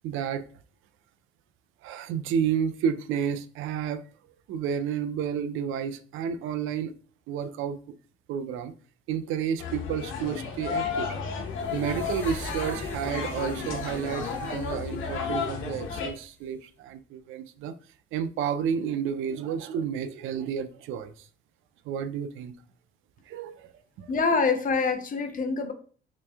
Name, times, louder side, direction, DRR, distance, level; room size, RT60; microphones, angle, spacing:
voice 1, 0.0-0.4 1.8-4.0 4.5-6.9 7.3-7.8 8.3-8.7 9.1-11.2 11.7-17.7 18.1-21.3 21.8-22.5 23.3-23.7 24.0-24.1, right 8 dB, 90° right, 0.4 m, -31 dB
sound 1, 9.6-16.1, left 5 dB, 85° left, 0.8 m, -33 dB
sound 2, 11.5-16.6, left 1 dB, 10° left, 0.8 m, -45 dB
voice 2, 24.1-25.7, left 4 dB, 45° left, 0.7 m, -25 dB
3.3 x 3.1 x 3.4 m
cardioid pair, 90°, 20 cm